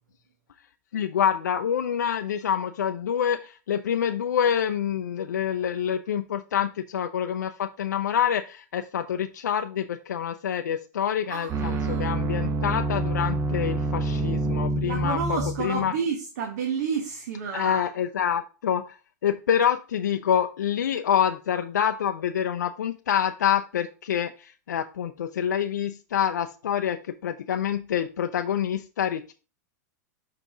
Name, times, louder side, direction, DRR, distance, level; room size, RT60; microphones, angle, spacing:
voice 1, 0.9-15.9 17.5-19.0 19.2-29.3, left 9 dB, 85° left, 0.5 m, -27 dB
voice 2, 11.3-12.1 14.8-17.9, right 6 dB, 70° right, 1.3 m, -30 dB
sound 1, 11.5-15.9, right 2 dB, 30° right, 1.2 m, -27 dB
7.0 x 4.9 x 3.6 m
hypercardioid pair, 105°, 9 cm